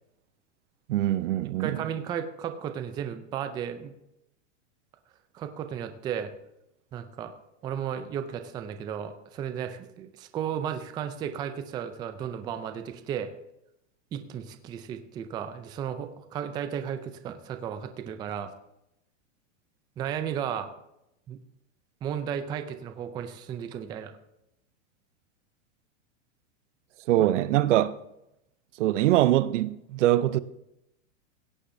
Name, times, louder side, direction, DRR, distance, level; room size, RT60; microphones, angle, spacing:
voice 1, 0.9-1.8 27.1-28.0 28.8-30.4, right 14 dB, 75° right, 0.7 m, -23 dB
voice 2, 1.6-3.9 5.3-6.3 6.9-7.3 7.6-13.3 14.1-18.5 20.0-20.7 21.3-21.4 22.0-24.1, right 8 dB, 10° right, 0.3 m, -34 dB
17.0 x 9.9 x 2.7 m
supercardioid pair, 145°, 37 cm